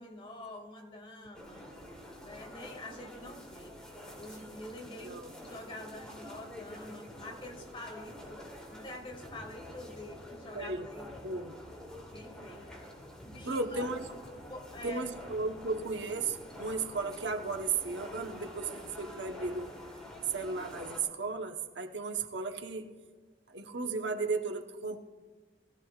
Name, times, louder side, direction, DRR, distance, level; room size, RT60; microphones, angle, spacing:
voice 1, 0.0-1.7 2.2-3.8 4.2-8.5 8.7-11.1 12.0-12.7 13.2-13.9 14.3-15.1, left 1 dB, 30° left, 2 dB, 2.2 m, -46 dB
sound 1, 1.3-21.0, left 1 dB, 5° left, 3.0 m, -48 dB
voice 2, 10.5-10.9 11.2-11.5 13.4-14.0 14.8-19.7 20.3-22.9 23.5-25.0, right 3 dB, 90° right, 5 dB, 1.1 m, -35 dB
21.0 x 16.0 x 2.4 m, 1.5 s
head